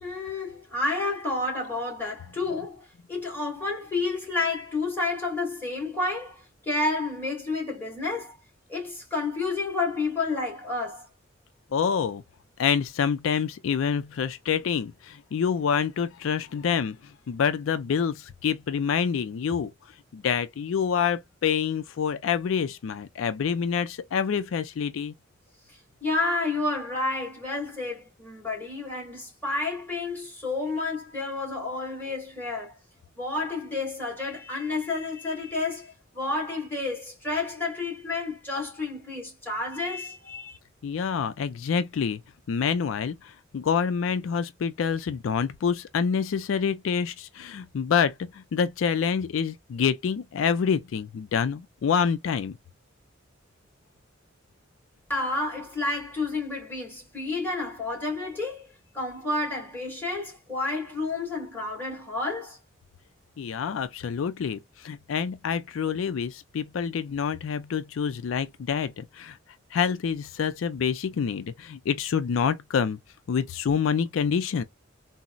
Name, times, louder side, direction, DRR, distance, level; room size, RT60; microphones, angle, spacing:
voice 1, 0.0-8.4 8.7-11.1 25.7-32.8 33.2-40.6 55.1-62.6, left 3 dB, 10° left, 1.9 m, -30 dB
voice 2, 11.7-12.2 12.6-17.0 17.3-19.7 20.1-25.1 40.8-42.2 42.5-52.6 63.4-69.4 69.7-73.0 73.3-74.6, left 7 dB, 85° left, 0.4 m, -27 dB
3.9 x 2.0 x 2.3 m
head